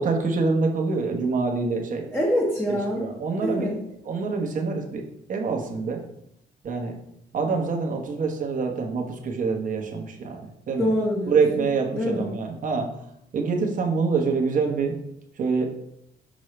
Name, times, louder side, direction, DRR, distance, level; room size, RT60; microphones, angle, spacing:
voice 1, 0.0-2.0 3.0-3.7 4.0-5.0 5.3-6.0 6.6-6.9 7.3-10.9 11.3-12.9 13.3-14.9 15.4-15.7, right 4 dB, 50° right, 2 dB, 1.2 m, -25 dB
voice 2, 2.1-3.1 3.4-3.8 10.8-11.4 11.9-12.3, equal, 10° left, -4 dB, 1.2 m, -25 dB
6.2 x 5.4 x 3.2 m, 0.76 s
cardioid pair, 115°, 18 cm